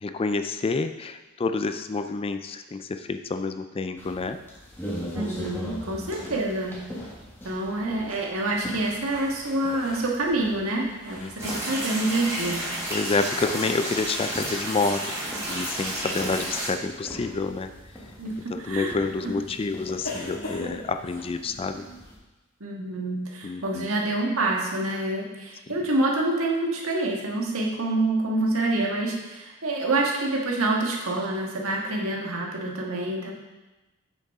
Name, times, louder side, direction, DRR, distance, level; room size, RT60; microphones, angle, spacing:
voice 1, 0.0-4.4 6.0-6.4 11.2-11.3 12.9-15.1 15.5-17.7 18.5-21.8 23.4-23.9, left 3 dB, 25° left, 9 dB, 0.3 m, -28 dB
sound 1, 4.0-22.2, equal, 10° left, 1.5 m, -41 dB
voice 2, 5.1-6.8 7.4-12.6 18.2-18.9 19.2-19.3 22.6-33.3, right 2 dB, 75° right, -1 dB, 1.6 m, -27 dB
sound 2, 8.5-11.7 14.1-14.3 15.3-15.7 17.0-17.4 18.3-18.4 20.0-21.2, left 2 dB, 75° left, 1.9 m, -40 dB
sound 3, 11.4-16.7, right 1 dB, 15° right, 2.3 m, -31 dB
8.4 x 6.7 x 3.6 m, 1.1 s
head